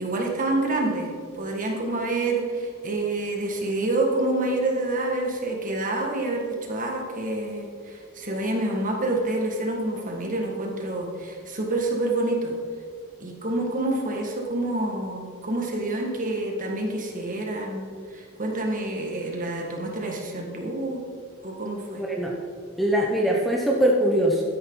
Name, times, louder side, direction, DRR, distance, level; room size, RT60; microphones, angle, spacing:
voice 1, 0.0-12.5 13.2-21.0 21.4-22.0, right 2 dB, 40° right, 0 dB, 1.9 m, -27 dB
voice 2, 22.0-22.3 22.8-24.4, right 1 dB, ahead, -2 dB, 1.0 m, -22 dB
12.5 x 10.5 x 4.0 m, 2.1 s
head